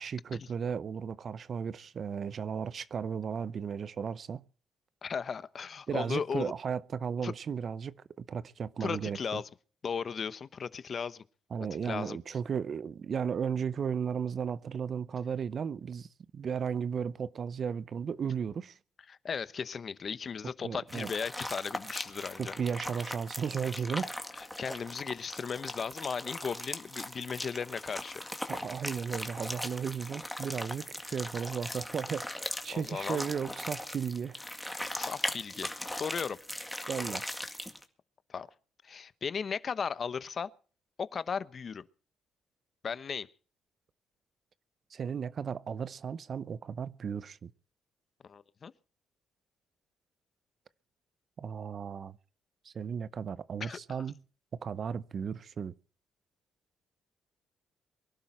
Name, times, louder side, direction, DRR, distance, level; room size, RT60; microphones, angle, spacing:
voice 1, 0.0-4.4 5.9-9.4 11.5-16.1 16.3-18.7 20.6-21.1 22.4-24.1 28.5-34.4 36.9-37.3 44.9-47.5 51.4-52.2 52.7-54.2 54.6-55.7, right 7 dB, 50° right, 0.7 m, -35 dB
voice 2, 5.0-6.5 7.2-7.3 8.8-9.5 9.8-11.2 11.8-12.2 19.1-22.5 24.4-28.2 32.7-33.3 35.0-36.4 38.3-38.5 38.8-40.5 41.0-41.9 42.8-43.3 48.2-48.7 53.6-53.8, left 6 dB, 45° left, 0.9 m, -36 dB
sound 1, 20.9-37.8, left 1 dB, 5° left, 2.0 m, -39 dB
23.0 x 12.0 x 4.4 m
cardioid pair, 90°, 0 cm